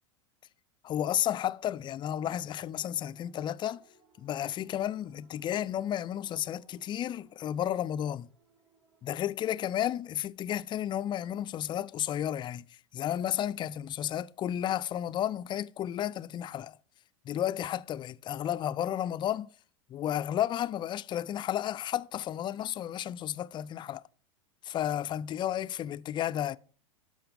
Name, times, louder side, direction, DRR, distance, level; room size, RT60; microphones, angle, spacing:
voice 1, 0.8-3.8 4.2-8.3 9.0-16.8 17.2-19.5 19.9-24.0 24.6-26.6, left 11 dB, 30° left, 0.4 m, -32 dB
sound 1, 2.4-10.2, right 5 dB, 55° right, 3.1 m, -64 dB
12.5 x 5.2 x 5.2 m
hypercardioid pair, 90°, 17 cm